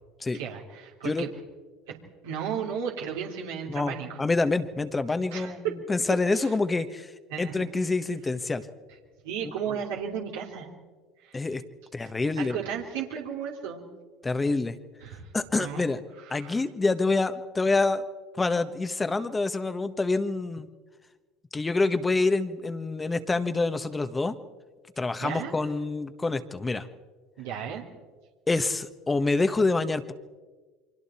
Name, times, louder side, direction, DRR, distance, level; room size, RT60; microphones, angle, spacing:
voice 1, 0.3-1.3 2.2-4.2 5.3-5.7 7.3-7.6 9.2-10.7 11.2-11.4 12.4-13.8 15.0-15.8 16.3-16.6 25.2-25.5 27.4-27.8, right 8 dB, 80° right, -1 dB, 3.0 m, -34 dB
voice 2, 3.7-7.1 7.4-8.7 9.4-9.5 11.3-11.6 11.9-12.6 14.2-14.8 15.3-16.0 16.3-18.0 18.3-20.7 21.5-24.4 25.0-26.9 28.5-30.1, left 3 dB, 20° left, 10 dB, 1.3 m, -27 dB
29.5 x 24.0 x 4.4 m, 1.4 s
hypercardioid pair, 85°, 0 cm